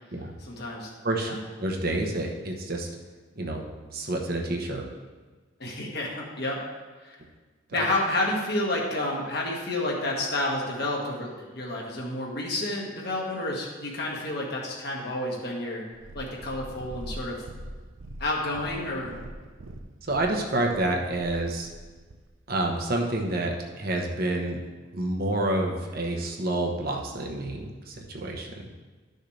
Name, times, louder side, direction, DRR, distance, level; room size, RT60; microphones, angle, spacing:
voice 1, 0.4-0.9 1.2-1.4 5.6-6.6 7.0-7.2 7.7-15.8 16.1-17.4 18.2-19.1, left 1 dB, 55° left, -2 dB, 1.7 m, -30 dB
voice 2, 1.0-2.9 3.4-3.6 3.9-4.9 7.7-7.9 20.0-21.7 22.5-24.6 24.9-28.5, right 1 dB, 50° right, 1 dB, 1.0 m, -28 dB
Purr, 15.9-22.3 23.0-23.1, right 1 dB, 85° right, 0.7 m, -42 dB
12.0 x 6.5 x 3.3 m, 1.4 s
head